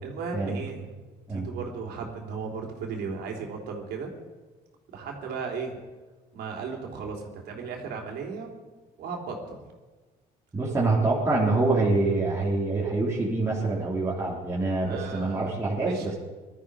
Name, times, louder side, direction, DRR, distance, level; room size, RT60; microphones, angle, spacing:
voice 1, 0.0-0.9 1.3-4.1 4.9-5.8 6.3-8.6 9.0-9.6 14.8-16.1, right 5 dB, 75° right, 1 dB, 3.6 m, -36 dB
voice 2, 10.5-16.1, right 3 dB, 15° right, -7 dB, 3.6 m, -25 dB
20.0 x 13.0 x 5.0 m, 1.3 s
cardioid pair, 110°, 17 cm